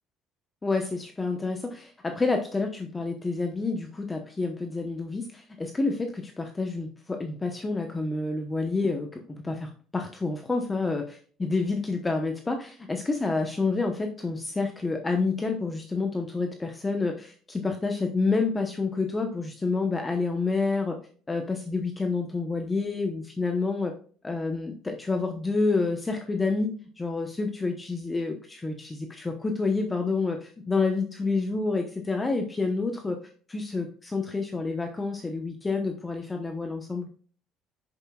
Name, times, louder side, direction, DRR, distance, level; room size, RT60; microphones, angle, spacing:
voice 1, 0.6-21.0 21.3-23.9 24.2-26.7 27.0-33.2 33.5-37.1, left 3 dB, 15° left, 4 dB, 0.9 m, -28 dB
9.0 x 6.9 x 2.3 m, 0.43 s
cardioid pair, 140°, 0 cm